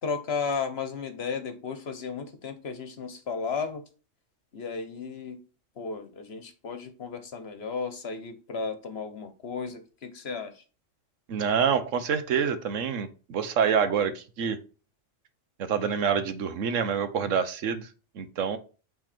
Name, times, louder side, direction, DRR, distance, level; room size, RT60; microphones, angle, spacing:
voice 1, 0.0-3.8 4.5-5.4 5.8-10.6, left 5 dB, 55° left, 9 dB, 1.2 m, -34 dB
voice 2, 11.3-14.6 15.6-17.9 18.2-18.6, right 7 dB, 85° right, 11 dB, 1.2 m, -27 dB
8.9 x 3.7 x 4.2 m, 0.35 s
omnidirectional pair, 1.3 m